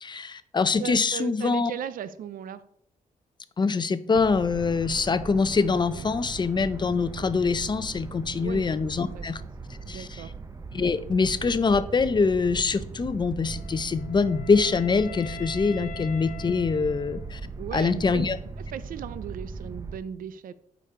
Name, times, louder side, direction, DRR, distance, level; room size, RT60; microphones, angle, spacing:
voice 1, 0.0-1.7 3.6-9.4 9.9-10.2 10.7-17.4 17.7-18.4, left 4 dB, 30° left, 13 dB, 0.5 m, -24 dB
voice 2, 0.8-2.6 8.4-8.6 9.1-9.3 9.9-10.3 17.6-18.3 18.7-20.5, right 9 dB, 80° right, 14 dB, 0.5 m, -37 dB
sound 1, 4.1-20.0, right 4 dB, 25° right, 0.6 m, -39 dB
Wind instrument woodwind instrument, 13.4-17.6, left 9 dB, 80° left, 0.5 m, -44 dB
8.6 x 5.2 x 3.7 m, 0.70 s
cardioid pair, 100°, 14 cm